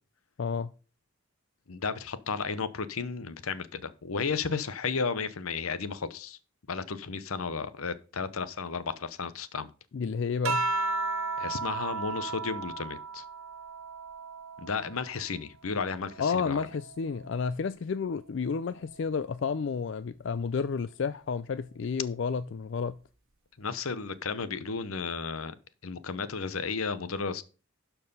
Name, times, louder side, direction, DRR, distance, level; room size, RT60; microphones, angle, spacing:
voice 1, 0.4-0.7 9.9-10.7 16.2-22.9, left 5 dB, 55° left, 0.3 m, -31 dB
voice 2, 1.7-6.4 6.7-9.7 11.4-13.2 14.6-16.6 23.6-25.5 25.8-27.4, left 5 dB, 80° left, 0.8 m, -33 dB
sound 1, 10.4-15.2 15.7-17.4 18.6-19.1, right 3 dB, 75° right, 1.2 m, -35 dB
12.0 x 4.7 x 5.4 m
head